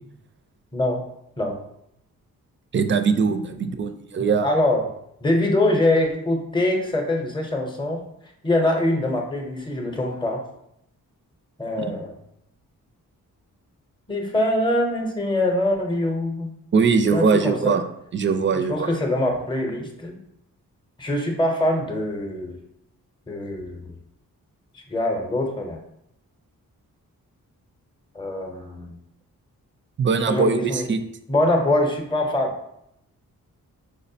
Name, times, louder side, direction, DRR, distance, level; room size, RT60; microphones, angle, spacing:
voice 1, 0.7-1.0 1.4-1.6 4.4-4.9 5.2-8.0 8.4-10.4 11.6-12.1 14.1-16.5 17.1-17.8 18.5-20.2 21.0-22.6 23.3-24.0 24.9-25.8 28.1-29.0 30.3-30.9 31.3-32.5, left 1 dB, 15° left, 2 dB, 0.7 m, -23 dB
voice 2, 2.7-4.5 11.8-11.9 16.7-17.8 18.1-19.0 30.0-31.0, right 5 dB, 35° right, 8 dB, 0.4 m, -21 dB
4.7 x 2.1 x 2.7 m, 0.76 s
cardioid pair, 55°, 36 cm